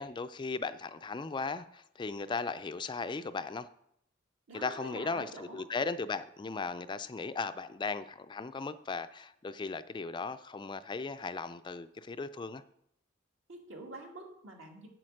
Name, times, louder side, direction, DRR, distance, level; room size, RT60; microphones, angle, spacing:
voice 1, 0.0-3.7 4.5-12.6, left 4 dB, 25° left, 12 dB, 0.3 m, -37 dB
voice 2, 4.5-5.7 13.5-14.9, right 2 dB, 75° right, 0 dB, 2.3 m, -46 dB
7.9 x 7.6 x 6.5 m, 0.74 s
head